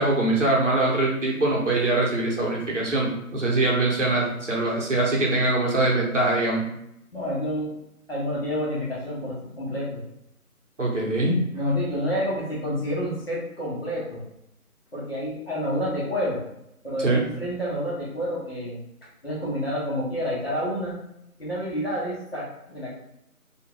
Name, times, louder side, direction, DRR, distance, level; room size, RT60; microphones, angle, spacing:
voice 1, 0.0-6.7 10.8-11.4 17.0-17.2, right 2 dB, 55° right, -3 dB, 0.9 m, -23 dB
voice 2, 7.1-7.7 8.1-10.0 11.2-14.2 14.9-16.4 16.8-18.8 19.2-21.0 21.4-22.9, equal, 40° left, -7 dB, 1.2 m, -29 dB
2.7 x 2.4 x 3.1 m, 0.80 s
figure-of-eight pair, 170°, 45 cm